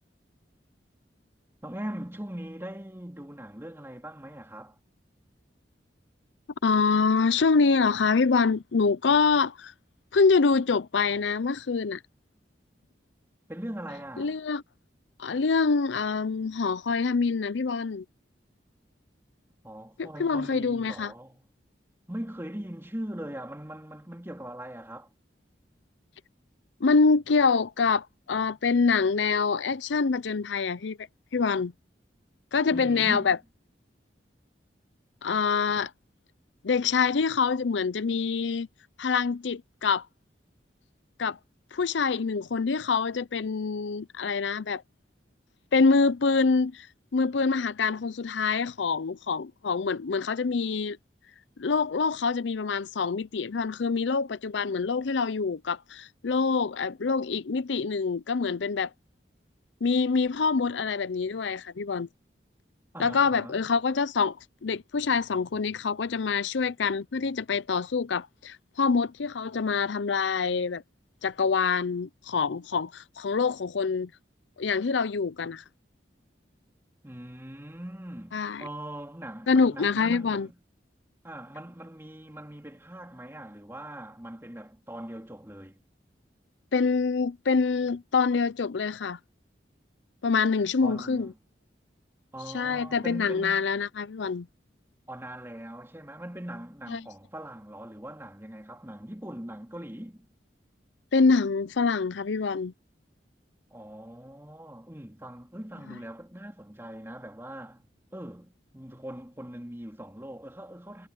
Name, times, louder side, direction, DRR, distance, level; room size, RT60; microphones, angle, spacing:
voice 1, 1.6-4.8 13.5-14.4 19.6-21.5 22.1-25.1 32.7-33.4 62.9-63.6 77.0-80.6 81.2-85.8 90.8-91.3 92.3-93.7 95.1-100.3 103.7-111.1, right 1 dB, 15° right, 3.2 m, -41 dB
voice 2, 6.6-9.7 10.1-12.0 14.2-14.6 15.2-18.0 20.0-21.1 26.8-31.0 31.3-31.7 32.5-33.4 35.2-35.9 36.6-38.7 39.0-40.1 41.2-41.4 41.7-44.8 45.7-46.9 47.1-51.0 51.6-58.9 59.8-62.1 63.0-64.4 64.6-70.8 71.2-74.1 74.6-75.6 78.3-78.6 79.5-80.5 86.7-89.2 90.2-91.3 92.5-94.5 96.9-97.0 101.1-102.7, left 4 dB, 85° left, 0.6 m, -25 dB
head